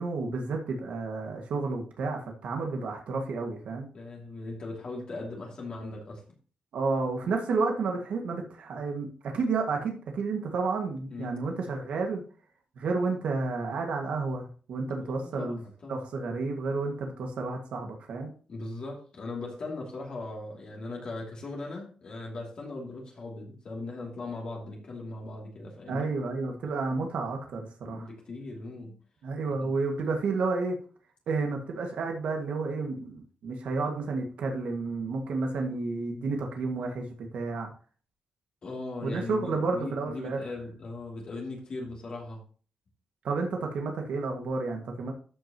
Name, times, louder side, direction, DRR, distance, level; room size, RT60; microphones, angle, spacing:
voice 1, 0.0-3.9 6.7-12.2 12.8-15.6 15.9-18.3 25.9-28.1 29.2-30.8 31.3-37.7 39.0-40.4 43.2-45.1, right 3 dB, 85° right, 2 dB, 1.8 m, -31 dB
voice 2, 3.9-6.2 11.1-11.4 15.0-16.0 18.5-26.1 27.8-29.0 29.6-29.7 38.6-42.4, left 2 dB, 45° left, -2 dB, 2.7 m, -39 dB
13.0 x 6.3 x 3.0 m, 0.40 s
wide cardioid pair, 175°, 2 cm